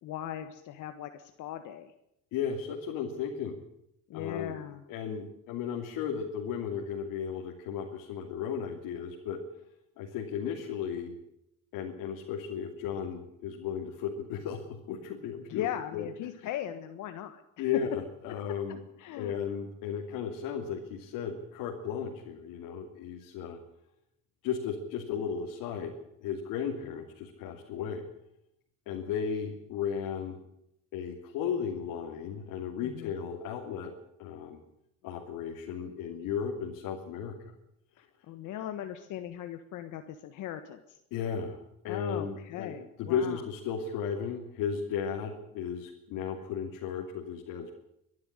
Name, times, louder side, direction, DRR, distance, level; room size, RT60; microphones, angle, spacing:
voice 1, 0.0-1.9 4.1-4.8 15.5-17.8 19.0-19.4 32.8-33.1 38.3-41.0 41.9-43.4, left 11 dB, 65° left, 8 dB, 1.5 m, -38 dB
voice 2, 2.3-3.6 4.1-4.6 4.9-9.4 10.0-11.2 11.7-15.7 15.9-16.1 17.6-18.8 19.2-23.6 24.4-25.9 26.2-28.0 28.9-30.4 30.9-33.9 34.2-34.6 35.0-37.5 41.1-41.6 41.8-47.7, left 7 dB, 80° left, 1 dB, 2.9 m, -35 dB
23.0 x 11.5 x 9.9 m, 0.79 s
cardioid pair, 140°, 33 cm